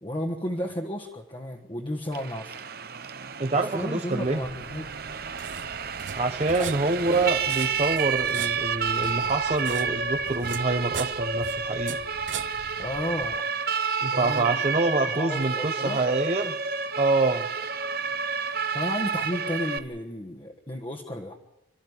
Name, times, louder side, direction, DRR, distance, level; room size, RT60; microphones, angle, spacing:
voice 1, 0.0-2.6 3.5-4.9 6.6-6.7 7.1-7.3 12.8-13.5 14.1-14.6 15.2-16.0 18.7-21.4, left 1 dB, 25° left, 0 dB, 1.4 m, -33 dB
Siren, 2.1-19.8, right 5 dB, 55° right, 1.0 m, -30 dB
voice 2, 3.4-4.4 6.1-12.0 14.0-16.5 16.9-17.5, right 3 dB, 35° right, 5 dB, 0.8 m, -26 dB
sound 1, 4.1-13.4, right 7 dB, 75° right, 0.7 m, -41 dB
28.5 x 13.0 x 9.7 m, 0.97 s
head